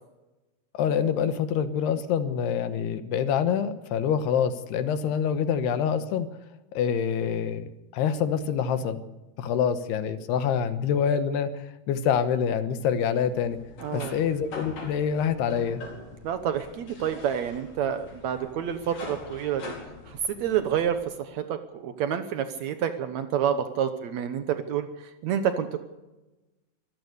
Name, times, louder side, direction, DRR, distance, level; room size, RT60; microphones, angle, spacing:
voice 1, 0.7-6.3 6.7-9.0 9.4-11.5 11.9-13.6 13.9-15.8, left 7 dB, 75° left, 10 dB, 3.1 m, -26 dB
sound 1, 13.3-21.0, left 3 dB, 50° left, 6.0 m, -44 dB
voice 2, 13.8-14.2 16.2-19.7 20.1-24.9 25.2-25.8, right 9 dB, 85° right, 8 dB, 1.5 m, -28 dB
25.0 x 15.5 x 6.8 m, 1.1 s
omnidirectional pair, 4.9 m